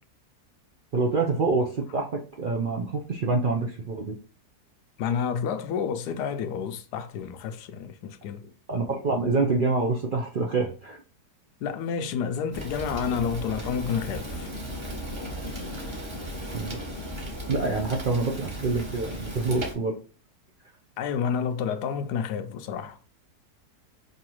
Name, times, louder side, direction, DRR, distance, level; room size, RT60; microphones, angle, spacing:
voice 1, 0.9-4.2 8.7-11.0 16.5-16.8 17.5-19.9, right 3 dB, 60° right, 0.5 m, -26 dB
voice 2, 5.0-8.5 11.6-14.5 21.0-23.0, left 7 dB, 85° left, 1.1 m, -30 dB
Fire, 12.5-19.7, equal, 20° right, 1.0 m, -36 dB
5.4 x 2.8 x 3.0 m
omnidirectional pair, 1.7 m